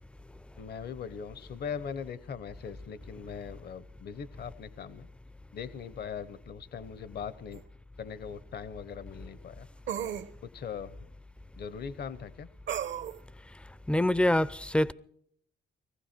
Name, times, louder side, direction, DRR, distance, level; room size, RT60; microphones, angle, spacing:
voice 1, 0.6-5.1 5.5-7.6 8.0-9.7 10.4-11.1 11.6-12.5, left 7 dB, 55° left, 0.9 m, -40 dB
sound 1, 7.5-7.6 9.9-10.3 12.7-13.2, right 9 dB, 70° right, 1.1 m, -34 dB
voice 2, 13.9-14.9, left 1 dB, 5° left, 0.5 m, -25 dB
19.5 x 15.0 x 4.4 m
cardioid pair, 90°, 20 cm